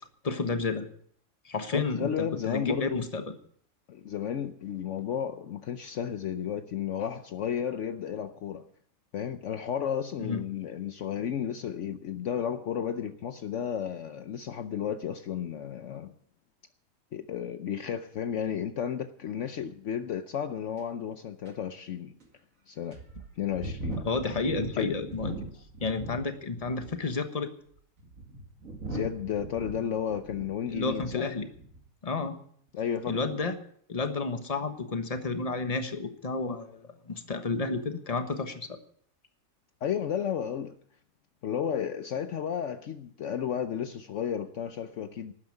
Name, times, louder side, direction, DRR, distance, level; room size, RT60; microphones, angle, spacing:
voice 1, 0.2-0.9 1.4-3.3 10.2-10.4 24.0-25.3 25.8-27.5 30.7-31.5 32.0-32.4 33.1-33.5 33.9-36.8 37.1-38.7, left 3 dB, 25° left, 1.3 m, -31 dB
voice 2, 1.7-3.0 3.9-8.7 9.1-16.1 17.1-22.1 22.7-23.0 23.4-24.0 24.7-25.0 28.9-31.3 32.7-33.3 39.8-40.8 41.4-45.3, left 8 dB, 65° left, 1.0 m, -33 dB
sound 1, 20.8-20.9 21.5-21.6 22.2-22.3 22.9-26.3 26.6-27.1 27.8-31.2 31.5-31.9, right 2 dB, 65° right, 2.5 m, -40 dB
12.5 x 9.5 x 8.7 m
omnidirectional pair, 1.5 m